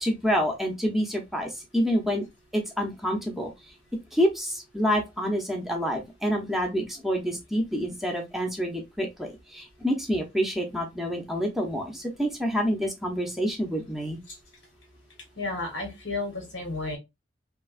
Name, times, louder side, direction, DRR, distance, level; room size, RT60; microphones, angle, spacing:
voice 1, 0.0-2.2 2.5-3.5 4.1-14.2, equal, ahead, 0.6 m, -27 dB
voice 2, 15.4-17.0, left 3 dB, 85° left, 1.2 m, -32 dB
3.1 x 2.2 x 2.4 m
head